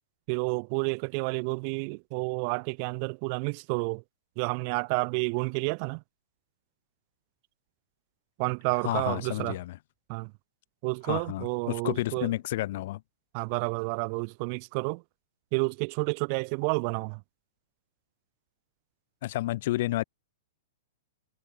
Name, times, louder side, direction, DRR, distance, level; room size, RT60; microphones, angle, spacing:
voice 1, 0.3-4.0 4.4-6.0 8.4-9.6 10.1-10.3 10.8-12.3 13.3-15.0 15.5-17.2, right 39 dB, 45° right, 1.5 m, -30 dB
voice 2, 8.8-9.8 11.0-13.0 19.2-20.0, left 16 dB, 55° left, 2.5 m, -30 dB
figure-of-eight pair, 105°, 0 cm